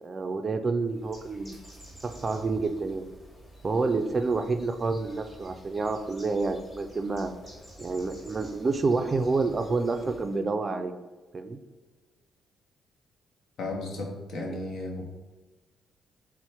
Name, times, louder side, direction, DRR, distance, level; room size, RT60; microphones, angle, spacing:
voice 1, 0.0-1.6 2.0-3.0 3.6-7.3 7.8-10.9 11.3-11.6, right 3 dB, 35° right, 8 dB, 0.4 m, -28 dB
Bird, 0.8-10.5, right 1 dB, 20° left, 1.4 m, -50 dB
voice 2, 13.6-15.0, left 2 dB, 70° left, 1 dB, 0.8 m, -34 dB
4.3 x 2.1 x 4.3 m, 1.2 s
cardioid pair, 90°, 0 cm